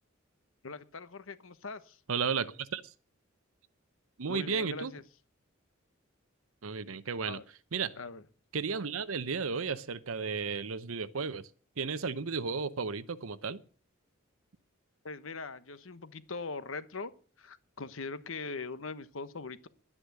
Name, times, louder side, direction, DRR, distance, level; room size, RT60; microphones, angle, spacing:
voice 1, 0.6-2.0 4.3-5.0 7.3-7.4 8.0-8.2 15.0-17.1 17.4-19.7, left 4 dB, 75° left, 1.1 m, -41 dB
voice 2, 2.1-2.9 4.2-4.9 6.6-7.4 7.7-7.9 8.5-11.5 11.8-13.6, right 5 dB, 85° right, 0.8 m, -33 dB
11.5 x 9.9 x 8.0 m
head